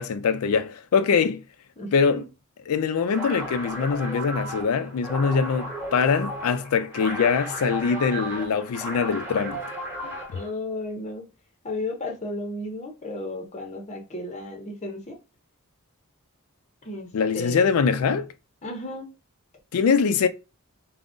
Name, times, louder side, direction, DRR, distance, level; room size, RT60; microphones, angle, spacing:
voice 1, 0.0-1.4 1.9-2.2 2.7-9.6 17.1-18.3 19.7-20.3, left 5 dB, 70° left, 0.4 m, -23 dB
voice 2, 1.8-2.2 10.0-11.2 11.6-15.2 16.8-17.7 18.6-19.1, left 2 dB, 30° left, 0.6 m, -34 dB
sound 1, 3.0-10.5, right 1 dB, 10° right, 1.2 m, -34 dB
3.6 x 2.1 x 2.5 m
head